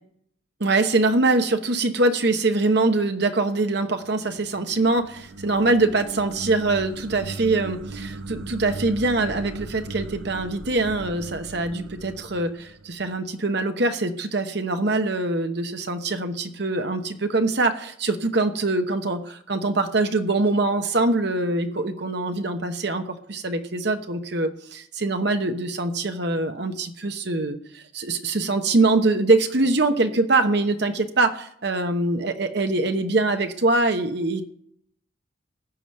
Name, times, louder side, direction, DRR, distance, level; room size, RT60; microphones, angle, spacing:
voice 1, 0.6-34.4, right 2 dB, 55° right, 8 dB, 1.0 m, -23 dB
sound 1, 4.0-13.3, right 2 dB, 75° right, 0.7 m, -38 dB
14.5 x 5.1 x 8.8 m, 0.69 s
head